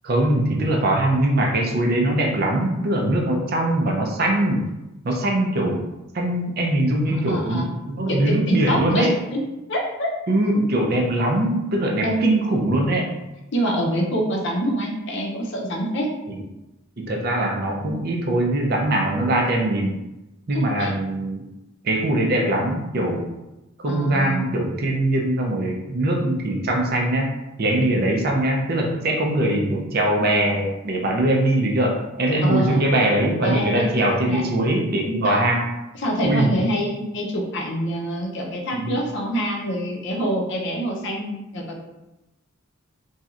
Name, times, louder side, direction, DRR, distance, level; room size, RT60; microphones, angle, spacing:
voice 1, 0.0-4.6 5.0-5.8 6.1-9.1 10.3-13.1 16.3-16.4 17.0-19.9 20.5-21.4 21.8-23.2 23.8-27.3 27.6-35.6 36.2-36.5 38.8-38.9, right 1 dB, 50° right, 0 dB, 0.5 m, -21 dB
voice 2, 7.1-7.7 8.1-9.4 9.7-10.1 12.0-12.2 13.5-16.1 20.5-20.9 23.9-24.4 32.4-32.8 33.4-34.4 35.2-35.4 36.0-41.8, equal, 60° left, -1 dB, 0.6 m, -26 dB
3.1 x 2.7 x 2.4 m, 0.99 s
head